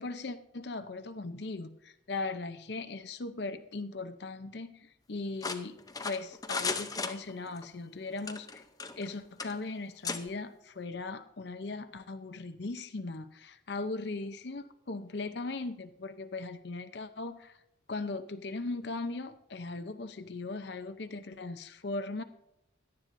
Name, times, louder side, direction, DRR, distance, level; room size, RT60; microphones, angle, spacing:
voice 1, 0.0-5.8 6.0-8.6 9.0-17.6 17.9-22.2, left 3 dB, 55° left, 10 dB, 0.7 m, -38 dB
sound 1, 5.4-7.7 8.2-9.1 9.4-9.5 10.0-10.2, left 4 dB, 20° left, 0.7 m, -35 dB
17.5 x 11.5 x 2.6 m, 0.82 s
head